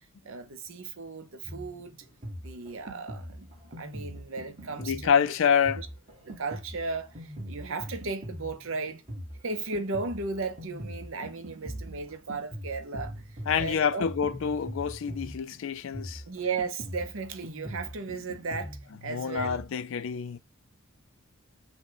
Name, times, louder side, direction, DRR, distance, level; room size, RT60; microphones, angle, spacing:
voice 1, 0.2-2.0 2.4-3.5 3.8-5.2 5.8-5.9 6.4-9.0 9.4-13.1 13.6-14.1 16.3-19.6, right 4 dB, 60° right, 0.7 m, -35 dB
Drum kit, 1.4-19.6, equal, 30° right, 1.5 m, -42 dB
voice 2, 4.8-5.8 13.5-16.2 19.1-20.4, left 7 dB, 60° left, 0.4 m, -27 dB
6.0 x 2.2 x 3.8 m
head